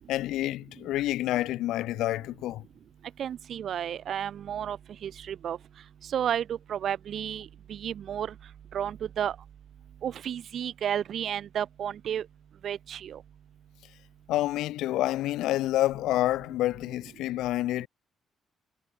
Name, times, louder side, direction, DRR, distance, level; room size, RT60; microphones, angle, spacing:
voice 1, 0.1-2.6 14.3-17.9, left 15 dB, 90° left, 2.7 m, -28 dB
voice 2, 3.2-4.8 5.0-5.6 6.1-8.3 8.7-9.3 10.0-12.2 12.6-13.2, right 9 dB, 65° right, 1.5 m, -32 dB
cardioid pair, 90°, 0 cm